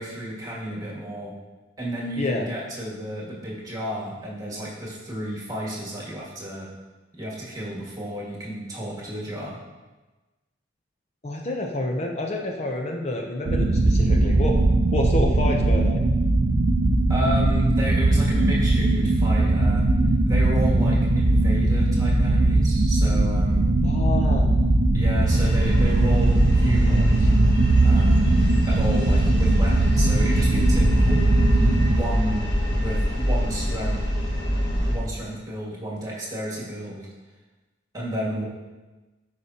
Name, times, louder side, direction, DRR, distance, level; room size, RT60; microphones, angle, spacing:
voice 1, 0.0-1.3 1.8-6.7 7.1-9.6 17.1-19.9 20.2-23.7 24.9-27.3 27.8-28.4 28.7-31.3 31.8-34.0 34.8-37.1 37.9-38.4, equal, 20° right, -5 dB, 1.8 m, -32 dB
voice 2, 11.2-14.6 14.9-16.0 23.8-24.5, left 1 dB, 35° left, 1 dB, 0.6 m, -28 dB
sound 1, 13.5-32.0, right 2 dB, 45° right, 0.6 m, -20 dB
sound 2, 25.3-35.0, equal, 65° left, 1.7 m, -25 dB
12.5 x 5.0 x 2.8 m, 1.2 s
head